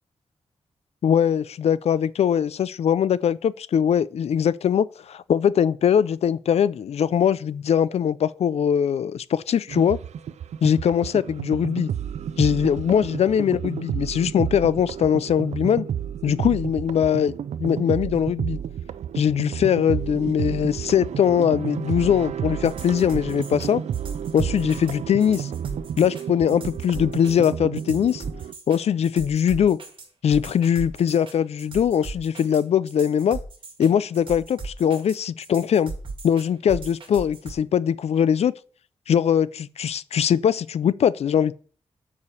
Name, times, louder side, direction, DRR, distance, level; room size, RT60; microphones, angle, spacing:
voice 1, 1.0-10.0 10.6-11.9 12.4-15.8 16.2-17.3 17.6-18.6 19.2-23.8 24.3-25.5 26.0-28.2 28.7-29.8 30.2-33.4 33.8-35.9 36.2-38.5 39.1-41.5, left 8 dB, 70° left, 0.4 m, -21 dB
sound 1, 9.7-28.5, right 9 dB, 85° right, 0.4 m, -31 dB
sound 2, 22.7-37.5, right 3 dB, 50° right, 2.1 m, -38 dB
6.7 x 5.0 x 7.0 m
wide cardioid pair, 165°, 11 cm